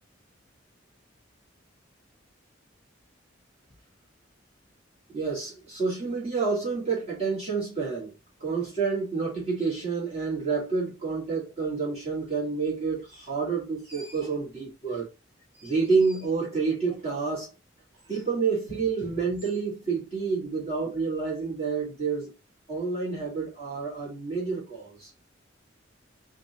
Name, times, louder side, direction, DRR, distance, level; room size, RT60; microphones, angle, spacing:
voice 1, 5.1-8.1 8.4-15.1 15.5-17.5 18.1-22.3 22.7-25.1, right 4 dB, 35° right, 2.0 m, -29 dB
4.1 x 2.6 x 4.1 m
head